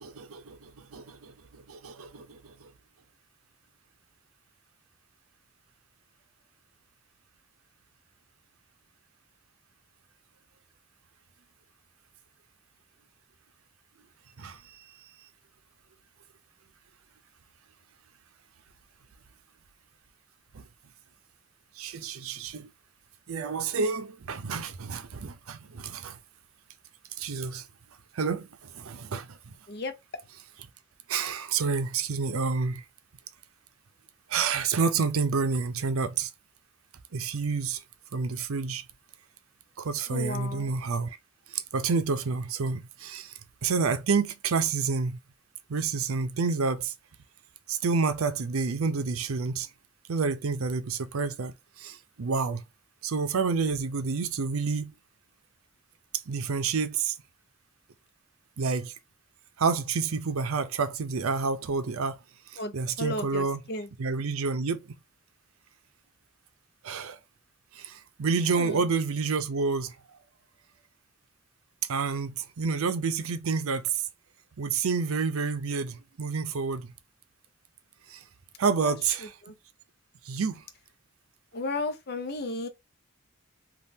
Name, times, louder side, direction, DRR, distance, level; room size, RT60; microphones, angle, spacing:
voice 1, 0.0-2.5 14.4-14.6 20.5-20.6 21.8-22.7 23.3-26.2 27.2-27.6 28.1-29.5 31.1-32.8 34.3-36.3 37.1-37.8 38.1-38.8 39.8-41.2 41.5-43.3 43.6-45.2 45.7-46.9 47.7-49.7 50.1-52.6 53.0-54.9 56.3-57.1 58.6-58.9 59.6-62.2 62.5-63.6 64.0-64.8 66.8-67.2 67.8-69.9 71.9-74.0 74.6-76.9 78.1-78.2 78.6-79.3 80.3-80.6, right 4 dB, 80° right, 0.6 m, -29 dB
voice 2, 40.1-40.7 62.6-63.9 68.5-68.9 78.8-79.0 79.2-79.5 81.5-82.7, left 2 dB, 50° left, 0.6 m, -34 dB
3.5 x 2.4 x 2.7 m
head